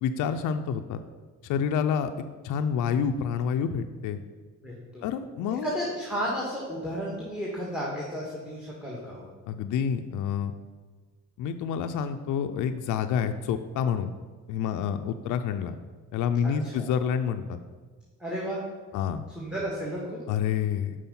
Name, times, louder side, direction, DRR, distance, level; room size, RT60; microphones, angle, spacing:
voice 1, 0.0-1.0 1.4-2.1 2.4-4.2 5.0-5.7 9.5-10.5 11.4-14.1 14.5-15.7 16.1-17.6 18.9-19.2 20.3-21.1, left 7 dB, 80° left, 8 dB, 0.5 m, -28 dB
voice 2, 4.6-5.0 5.6-9.3 16.4-16.9 18.2-18.6 19.3-20.2, equal, 5° right, -4 dB, 1.6 m, -33 dB
5.7 x 4.8 x 5.4 m, 1.4 s
cardioid pair, 90°, 30 cm